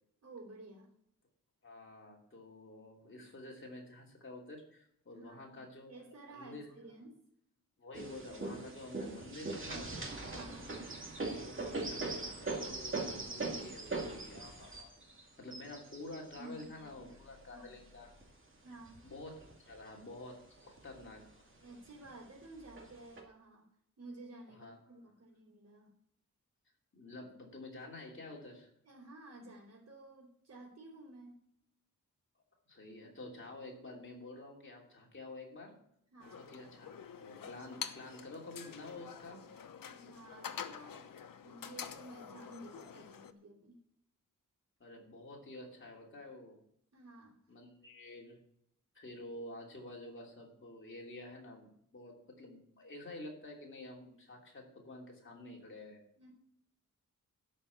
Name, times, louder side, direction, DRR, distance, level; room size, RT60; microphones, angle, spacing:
voice 1, 0.2-0.9 5.1-5.6 5.9-7.2 10.3-10.7 16.3-17.2 17.5-17.8 18.6-19.0 21.6-23.7 24.0-25.9 28.8-31.4 36.1-36.5 39.9-41.1 41.4-43.8 46.9-47.4 56.2-56.3, right 2 dB, 55° right, -6 dB, 3.8 m, -53 dB
voice 2, 1.6-5.9 6.3-6.7 7.8-10.0 11.4-14.9 15.4-18.1 19.0-21.3 24.5-24.9 26.9-28.7 32.7-35.8 36.2-39.4 44.8-46.5 47.5-48.4 48.9-56.0, left 2 dB, 40° left, -1 dB, 3.0 m, -49 dB
sound 1, 7.9-18.2 18.9-19.8 20.2-20.3 20.6-21.3 22.0-22.1 22.8-23.2, right 3 dB, 40° right, 2.4 m, -41 dB
sound 2, 36.2-43.3, left 7 dB, 90° left, 0.9 m, -47 dB
12.5 x 5.5 x 8.5 m, 0.69 s
wide cardioid pair, 180°, 32 cm